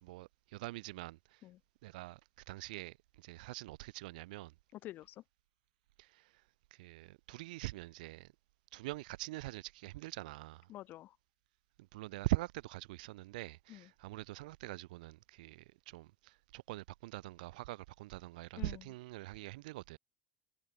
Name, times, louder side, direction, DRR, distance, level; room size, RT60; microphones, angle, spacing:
voice 1, 0.0-1.4 1.8-2.2 2.5-4.5 6.0-6.3 6.7-8.3 8.7-10.7 11.9-20.0, right 19 dB, 85° right, 2.2 m, -43 dB
voice 2, 4.7-5.2 10.7-11.2 13.7-13.9 18.6-18.8, left 15 dB, 45° left, 5.9 m, -48 dB
supercardioid pair, 125°, 4 cm